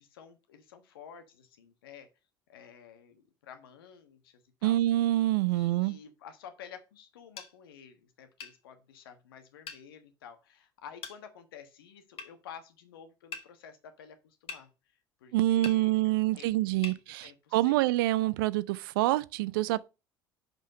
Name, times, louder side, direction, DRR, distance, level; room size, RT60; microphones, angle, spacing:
voice 1, 0.0-2.1 2.5-4.8 5.5-14.7 15.2-17.8, left 8 dB, 80° left, 1.3 m, -51 dB
voice 2, 4.6-6.0 15.3-19.9, right 16 dB, 70° right, 0.5 m, -26 dB
sound 1, 7.4-7.5 8.4-8.6 9.7-9.8 11.0-11.2 12.2-12.3 13.3-13.5 14.5-14.7 15.6-15.8 16.8-17.0, left 6 dB, 50° left, 1.5 m, -41 dB
6.0 x 5.5 x 5.4 m
hypercardioid pair, 65°, 12 cm